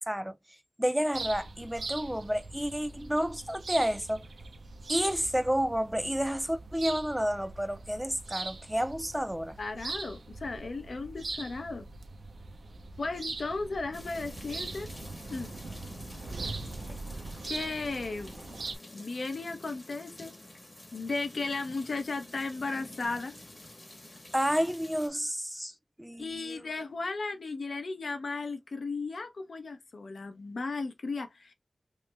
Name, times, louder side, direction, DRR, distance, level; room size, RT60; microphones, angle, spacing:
voice 1, 0.8-4.2 4.9-9.6 24.3-25.7 26.0-26.6, equal, 5° right, 0.3 m, -30 dB
sound 1, 1.1-18.8, right 3 dB, 85° right, 0.5 m, -41 dB
voice 2, 9.6-11.8 13.0-14.9 15.3-15.5 17.5-18.3 18.9-20.3 20.9-23.3 26.2-31.5, left 3 dB, 80° left, 0.5 m, -35 dB
sound 2, 13.9-25.1, left 1 dB, 30° left, 0.9 m, -49 dB
3.1 x 2.1 x 3.1 m
wide cardioid pair, 85°, 0 cm